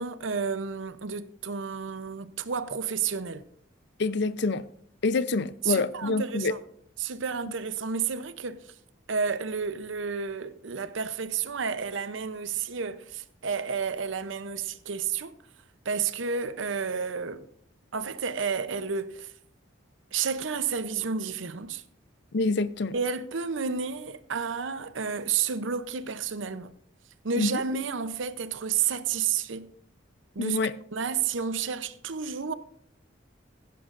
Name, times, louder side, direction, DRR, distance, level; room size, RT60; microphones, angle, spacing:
voice 1, 0.0-3.5 5.6-6.6 7.0-8.6 9.1-15.3 15.8-17.5 17.9-19.3 20.1-21.8 22.9-26.7 27.2-29.7 30.3-30.6 30.9-32.5, right 6 dB, 75° right, 0.7 m, -31 dB
voice 2, 4.0-4.6 5.0-6.5 22.3-22.9 27.4-27.6 30.4-30.7, left 3 dB, 60° left, 0.6 m, -26 dB
15.5 x 11.0 x 2.6 m
head